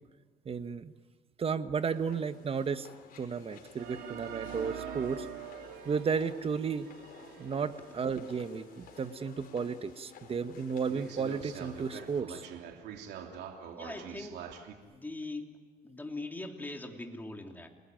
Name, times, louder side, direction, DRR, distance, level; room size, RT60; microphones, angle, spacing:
voice 1, 0.4-0.9 1.4-2.9 3.2-5.3 5.8-6.9 7.4-12.4, right 6 dB, 35° right, 10 dB, 1.4 m, -33 dB
sound 1, 1.8-12.2, left 6 dB, 60° left, 4.9 m, -53 dB
sound 2, 3.8-9.2 9.7-9.8 10.3-10.4 10.9-14.7, right 8 dB, 80° right, 3.2 m, -45 dB
voice 2, 13.7-14.4 14.8-15.6 15.8-17.7, left 2 dB, 10° left, 3 dB, 3.1 m, -41 dB
30.0 x 20.0 x 9.3 m, 1.4 s
cardioid pair, 110°, 17 cm